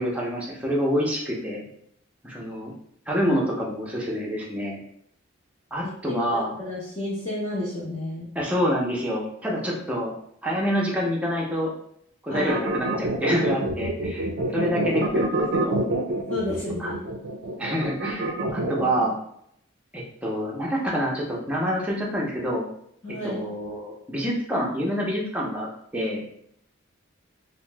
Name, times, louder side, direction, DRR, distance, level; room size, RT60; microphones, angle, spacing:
voice 1, 0.0-1.6 2.2-2.7 3.1-4.8 5.7-6.5 8.3-10.1 10.4-11.7 12.2-14.3 14.5-15.8 16.8-16.9 17.6-19.2 19.9-22.6 23.2-25.7 25.9-26.2, equal, 5° right, -3 dB, 0.6 m, -27 dB
voice 2, 5.8-8.3 12.3-12.9 16.3-17.0 23.0-23.4, left 1 dB, 30° left, -10 dB, 0.7 m, -31 dB
sound 1, 12.3-19.1, right 2 dB, 60° right, 0.4 m, -27 dB
2.8 x 2.0 x 3.3 m, 0.71 s
head